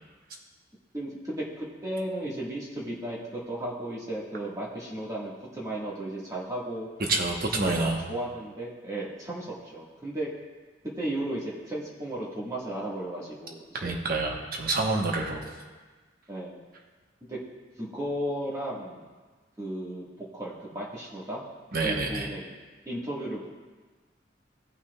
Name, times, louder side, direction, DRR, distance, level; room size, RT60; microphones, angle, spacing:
voice 1, 0.9-6.9 7.6-10.3 10.9-14.0 16.3-16.6 17.2-17.4 17.8-19.1 19.6-21.4 21.8-22.5 22.8-23.5, right 1 dB, 20° right, -6 dB, 1.6 m, -35 dB
voice 2, 7.1-8.0 13.8-15.4 21.7-22.3, right 3 dB, 50° right, 0 dB, 1.1 m, -27 dB
16.5 x 5.8 x 2.3 m, 1.4 s
head